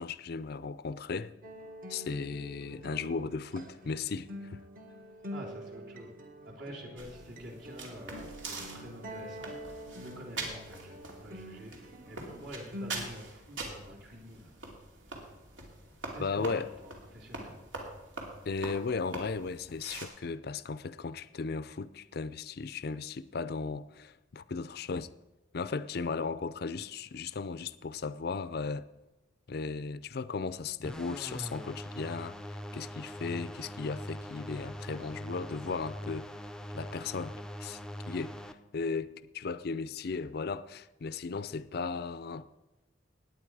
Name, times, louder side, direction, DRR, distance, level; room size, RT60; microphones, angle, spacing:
voice 1, 0.0-1.3 1.9-4.6 16.2-16.7 18.5-25.1 25.5-28.9 29.5-32.4 32.7-36.3 36.7-37.8 38.1-42.5, left 4 dB, 55° left, 0.5 m, -36 dB
sound 1, 1.4-13.1, equal, 45° right, 1.4 m, -46 dB
voice 2, 5.3-6.1 6.4-14.5 16.1-17.6, equal, 65° right, 3.4 m, -47 dB
sound 2, 7.0-20.1, right 3 dB, 85° right, 2.6 m, -44 dB
sound 3, 30.8-38.5, equal, 5° left, 0.5 m, -42 dB
17.5 x 9.3 x 4.8 m
head